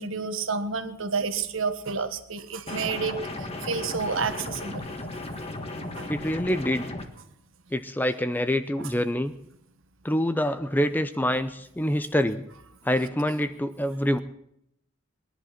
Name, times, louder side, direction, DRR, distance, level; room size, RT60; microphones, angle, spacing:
voice 1, 0.0-4.8 5.8-6.1 8.8-8.9, right 5 dB, 65° right, 9 dB, 1.4 m, -30 dB
sound 1, 2.7-7.1, left 2 dB, 30° left, 1.5 m, -35 dB
voice 2, 6.1-6.9 7.7-9.3 10.0-12.4 12.8-14.2, equal, 10° left, 11 dB, 0.5 m, -26 dB
20.0 x 11.0 x 5.9 m, 0.77 s
head